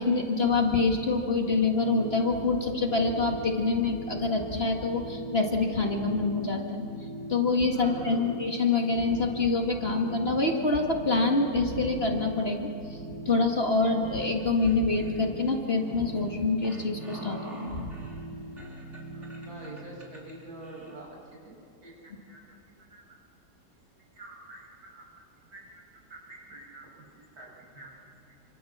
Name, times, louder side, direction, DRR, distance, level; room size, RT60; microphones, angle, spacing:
voice 1, 0.0-6.8 7.3-12.6 13.3-17.9, left 3 dB, 35° left, 2 dB, 2.1 m, -26 dB
sound 1, 1.5-19.7, equal, 65° left, 3.1 m, -41 dB
voice 2, 7.7-8.4 19.1-21.6 21.8-22.4 22.9-23.2 24.2-25.2 25.5-25.8 26.1-27.9 28.3-28.4, right 2 dB, 65° right, -3 dB, 7.5 m, -46 dB
sound 2, 14.2-20.9, right 1 dB, 45° right, 4.2 m, -49 dB
28.0 x 26.0 x 7.3 m, 2.6 s
omnidirectional pair, 1.7 m